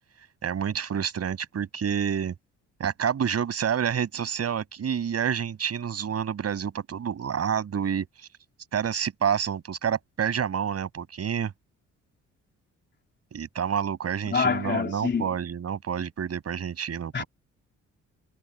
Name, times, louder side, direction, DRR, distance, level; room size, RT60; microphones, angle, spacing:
voice 1, 0.4-2.3 2.8-8.3 8.7-11.5 13.3-17.3, right 8 dB, 55° right, 7.3 m, -28 dB
voice 2, 14.3-15.3 17.1-17.2, left 5 dB, 35° left, 3.6 m, -26 dB
cardioid pair, 90°, 30 cm